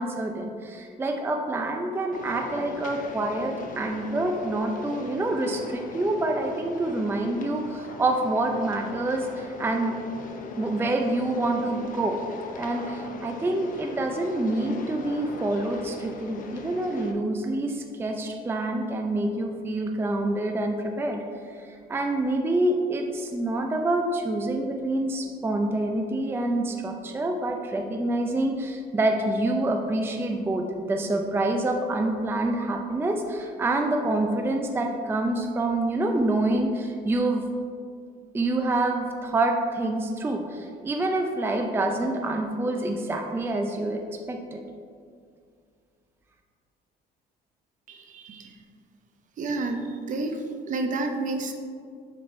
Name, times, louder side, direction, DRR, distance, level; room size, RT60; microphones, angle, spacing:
voice 1, 0.0-9.9 10.6-12.2 12.6-21.2 21.5-37.4 38.3-44.0 44.3-44.6, right 2 dB, 15° right, 3 dB, 0.4 m, -27 dB
sound 1, 2.1-17.1, left 3 dB, 55° left, 0.8 m, -40 dB
voice 2, 47.9-48.6 49.4-51.5, right 2 dB, 50° right, 4 dB, 0.7 m, -30 dB
6.3 x 4.1 x 4.4 m, 2.2 s
cardioid pair, 110°, 17 cm